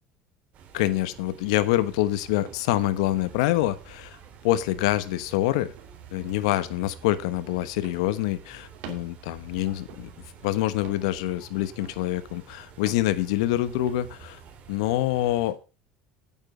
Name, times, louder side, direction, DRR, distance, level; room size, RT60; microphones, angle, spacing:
sound 1, 0.5-15.5, right 6 dB, 50° right, 3.2 m, -49 dB
voice 1, 0.7-4.2 4.4-5.7 6.1-10.1 10.4-14.4 14.7-15.6, left 15 dB, 85° left, 1.0 m, -26 dB
sound 2, 2.4-3.3 3.7-3.8 4.6-5.0 5.8-6.0 6.3-6.4 6.8-7.0 7.8-8.2 8.7-9.3 9.9-10.3 10.8-11.1 11.8-12.3 12.8-13.1 13.8-14.1 14.8-15.0, right 9 dB, 75° right, 2.7 m, -47 dB
9.3 x 8.7 x 5.2 m
supercardioid pair, 125°, 3 cm